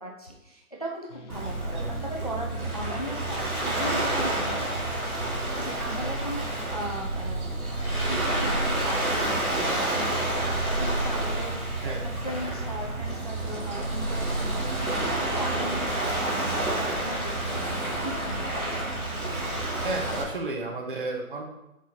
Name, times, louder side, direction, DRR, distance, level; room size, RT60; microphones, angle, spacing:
voice 1, 0.0-4.6 5.6-7.5 8.1-11.9 12.2-18.8, equal, 30° left, -1 dB, 0.5 m, -38 dB
sound 1, 1.1-18.6, right 1 dB, 55° left, 0.9 m, -48 dB
Waves surf, 1.3-20.2, right 1 dB, 80° right, 2.2 m, -29 dB
voice 2, 19.8-21.4, right 2 dB, 40° right, 1 dB, 1.1 m, -32 dB
6.1 x 4.2 x 4.3 m, 0.91 s
figure-of-eight pair, 155°, 43 cm